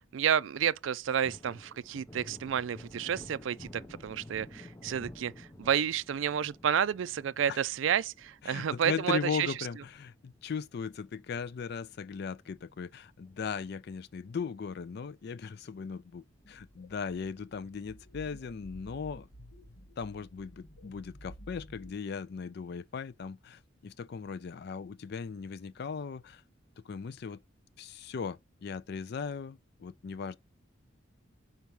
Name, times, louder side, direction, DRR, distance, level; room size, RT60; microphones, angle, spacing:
voice 1, 0.1-9.5, right 8 dB, 70° right, 0.4 m, -30 dB
Thunder, 0.8-11.6 11.9-12.0 12.4-13.9 14.2-14.3 14.7-15.5 15.9-16.0 16.3-16.4 18.8-19.3, left 1 dB, 15° left, 0.6 m, -52 dB
voice 2, 8.4-19.3 20.0-26.4 26.8-27.4 27.8-30.4, left 5 dB, 55° left, 0.4 m, -38 dB
sound 1, 16.4-21.9, equal, 85° left, 1.1 m, -52 dB
4.6 x 4.5 x 5.4 m
head